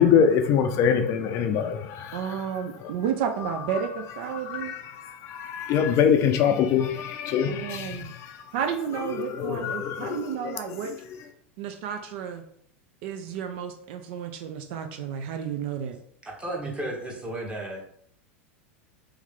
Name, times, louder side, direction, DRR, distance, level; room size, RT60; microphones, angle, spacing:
voice 1, 0.0-2.5 2.8-2.9 4.3-8.4 9.2-11.0, left 7 dB, 40° left, 0.4 m, -24 dB
voice 2, 2.1-4.7 7.5-8.1 8.5-10.9 11.6-12.4 13.0-16.0, right 8 dB, 55° right, 0.4 m, -32 dB
voice 3, 16.2-17.8, right 1 dB, 15° right, 1.2 m, -33 dB
3.2 x 3.1 x 3.6 m
figure-of-eight pair, 90°, 7 cm